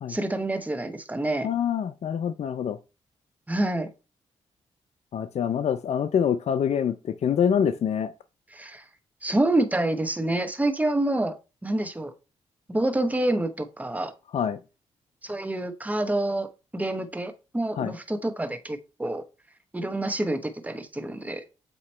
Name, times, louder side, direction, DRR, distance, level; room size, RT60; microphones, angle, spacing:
voice 1, 0.1-1.5 3.5-3.9 8.5-8.8 9.2-11.3 11.6-12.1 12.7-14.1 15.2-16.5 16.7-19.2 19.7-21.4, right 1 dB, 10° right, 0.9 m, -27 dB
voice 2, 1.4-2.8 5.1-8.1 14.3-14.6 17.8-17.9, left 8 dB, 65° left, 0.5 m, -25 dB
7.8 x 2.9 x 4.4 m
cardioid pair, 65°, 12 cm